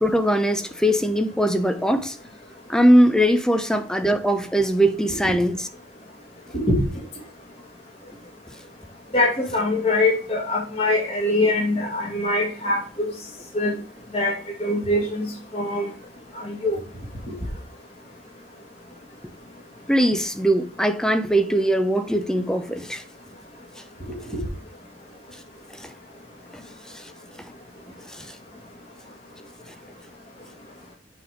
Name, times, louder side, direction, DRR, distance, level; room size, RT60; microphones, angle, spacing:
voice 1, 0.0-2.2 2.7-5.7 19.9-23.0 25.8-25.9 26.9-27.0 28.1-28.4, equal, 5° left, 0.6 m, -20 dB
voice 2, 9.1-13.1 13.5-13.8 14.1-15.9 16.4-16.8 24.3-24.4, left 2 dB, 35° left, 2.3 m, -23 dB
8.1 x 4.2 x 5.0 m
head